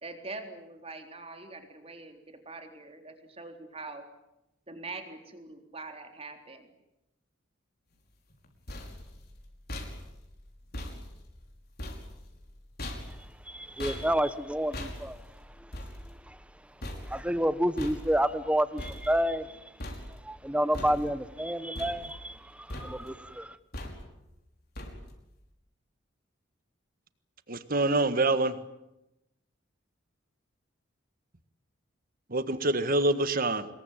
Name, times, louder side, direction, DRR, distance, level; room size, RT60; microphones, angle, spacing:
voice 1, 0.0-4.0 4.7-6.7, right 3 dB, 30° right, 5 dB, 3.8 m, -43 dB
sound 1, 8.3-19.5 19.8-20.4 20.7-21.4 21.8-22.4 22.7-23.2 23.7-24.3 24.8-25.3, left 1 dB, 55° left, 5.4 m, -42 dB
voice 2, 13.5-15.2 15.6-15.7 16.1-16.4 17.0-19.6 20.2-23.6, equal, 5° right, 13 dB, 1.3 m, -29 dB
voice 3, 27.5-28.6 32.3-33.7, right 2 dB, 50° right, 12 dB, 1.7 m, -26 dB
26.5 x 22.0 x 9.2 m, 0.89 s
head